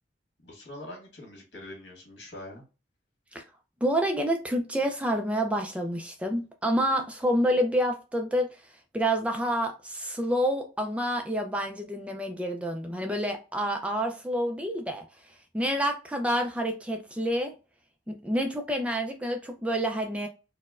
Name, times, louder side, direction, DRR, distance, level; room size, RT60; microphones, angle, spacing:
voice 1, 0.4-2.6, left 1 dB, 65° left, 1.6 m, -44 dB
voice 2, 3.8-17.5 18.1-20.3, equal, 5° right, 0.3 m, -28 dB
4.2 x 2.1 x 2.4 m
head